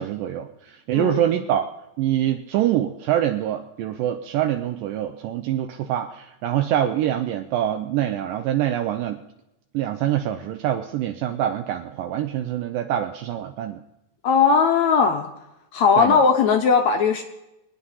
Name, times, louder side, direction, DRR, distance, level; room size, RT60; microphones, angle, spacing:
voice 1, 0.0-1.7 2.0-9.2 9.7-13.8 16.0-16.2, right 11 dB, 80° right, 6 dB, 2.2 m, -25 dB
voice 2, 0.9-1.3 14.2-15.3 15.7-17.2, left 5 dB, 70° left, 5 dB, 1.8 m, -18 dB
23.0 x 9.2 x 5.5 m, 0.89 s
omnidirectional pair, 4.1 m